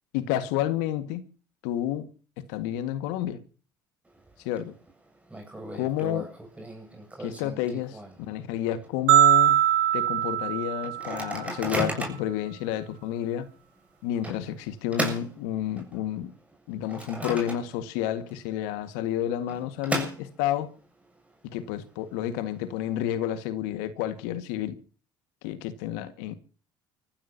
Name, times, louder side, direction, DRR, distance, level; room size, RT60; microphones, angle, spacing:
voice 1, 0.1-1.2 1.6-2.1 2.5-3.4 4.4-4.7 5.7-6.3 7.2-8.0 8.3-9.6 9.9-13.5 14.0-16.3 16.7-20.7 21.5-24.8 25.4-26.3, left 11 dB, 70° left, 1.8 m, -30 dB
Microwave oven, 4.1-4.6 4.9-5.0 5.3-8.4 8.8-8.9 9.2-9.5 10.0-10.1 10.8-12.4 13.0-13.1 14.2-16.1 16.5-18.0 18.3-18.4 19.2-20.7, right 2 dB, 10° right, 7.5 m, -35 dB
sound 1, 9.1-11.4, right 12 dB, 80° right, 2.6 m, -21 dB
30.0 x 15.0 x 2.8 m
hypercardioid pair, 65°, 10 cm